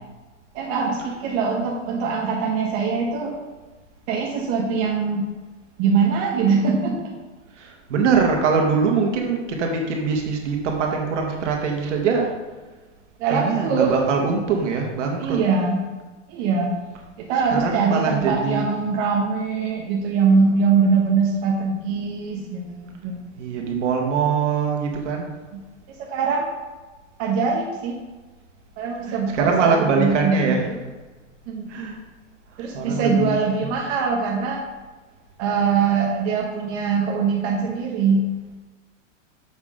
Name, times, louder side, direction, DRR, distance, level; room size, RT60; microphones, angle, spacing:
voice 1, 0.5-3.3 4.1-5.3 5.8-7.1 13.2-13.9 15.2-15.8 16.3-16.7 17.2-23.3 25.5-25.6 26.0-26.5 27.2-28.0 28.8-30.8 31.5-31.7 32.6-34.6 35.4-38.3, right 5 dB, 45° right, -2 dB, 1.3 m, -22 dB
voice 2, 7.6-12.3 13.3-15.4 17.3-18.7 23.4-25.3 29.0-30.7 31.7-31.9 32.7-33.7, right 5 dB, 65° right, 1 dB, 1.9 m, -23 dB
7.2 x 6.0 x 3.8 m, 1.3 s
hypercardioid pair, 125°, 38 cm